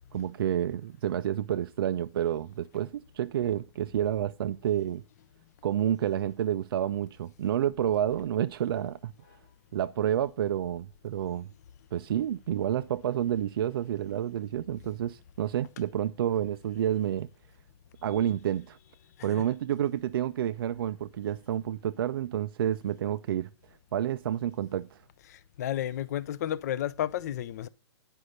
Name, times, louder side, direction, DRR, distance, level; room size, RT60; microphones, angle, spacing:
voice 1, 0.1-5.0 5.6-9.1 9.7-11.5 11.9-17.3 18.0-18.8 19.2-23.5 23.9-25.0, right 10 dB, 50° right, 0.4 m, -29 dB
voice 2, 25.3-27.7, left 11 dB, 35° left, 0.4 m, -32 dB
10.0 x 5.3 x 6.5 m
hypercardioid pair, 165°, 15 cm